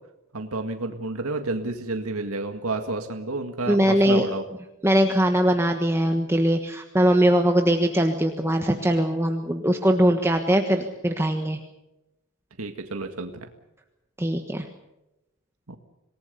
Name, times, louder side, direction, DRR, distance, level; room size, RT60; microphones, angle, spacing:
voice 1, 0.3-4.4 12.6-13.5 15.7-15.8, right 2 dB, 80° right, 5 dB, 1.9 m, -30 dB
voice 2, 3.7-4.2 4.8-11.6 14.2-14.7, equal, 10° right, 4 dB, 1.4 m, -21 dB
27.0 x 19.0 x 6.9 m, 0.94 s
head